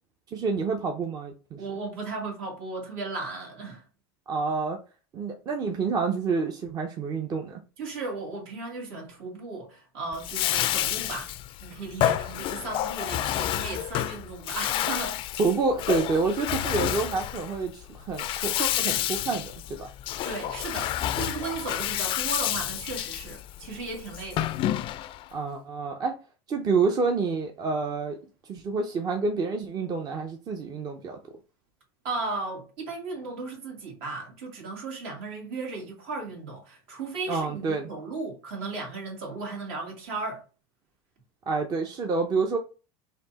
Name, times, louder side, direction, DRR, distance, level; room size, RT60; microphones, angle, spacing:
voice 1, 0.3-1.6 4.3-4.8 5.1-7.6 15.4-19.9 25.3-26.2 26.5-28.2 28.5-31.2 37.3-37.9 41.5-42.6, right 4 dB, 30° right, 0.7 m, -28 dB
voice 2, 1.6-3.8 7.8-11.3 11.6-15.2 20.2-24.5 32.0-40.4, right 3 dB, 70° right, 2.4 m, -36 dB
Bathtub (filling or washing), 10.1-25.3, left 12 dB, 45° left, 0.4 m, -29 dB
4.3 x 2.8 x 4.0 m
supercardioid pair, 120°, 13 cm